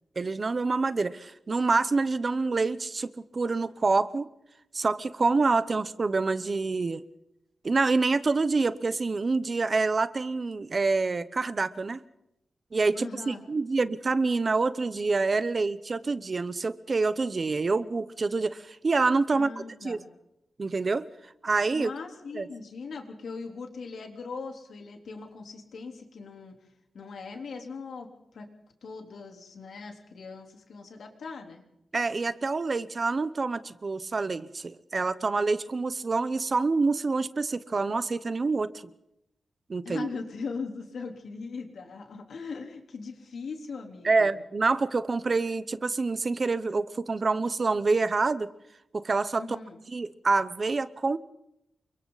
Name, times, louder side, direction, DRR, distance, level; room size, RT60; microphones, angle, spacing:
voice 1, 0.2-4.3 4.7-7.0 7.6-12.0 12.7-19.5 19.8-20.0 20.6-21.1 21.4-21.9 22.3-22.5 31.9-38.7 39.7-40.1 44.0-48.5 48.9-49.5 49.9-51.2, right 3 dB, 35° right, 14 dB, 0.9 m, -27 dB
voice 2, 12.9-13.4 19.3-20.0 21.7-26.5 26.9-28.1 28.3-28.5 28.8-31.6 39.9-44.3 49.3-49.8, left 4 dB, 70° left, 3 dB, 3.7 m, -40 dB
29.0 x 24.5 x 4.1 m, 0.82 s
wide cardioid pair, 170°, 0 cm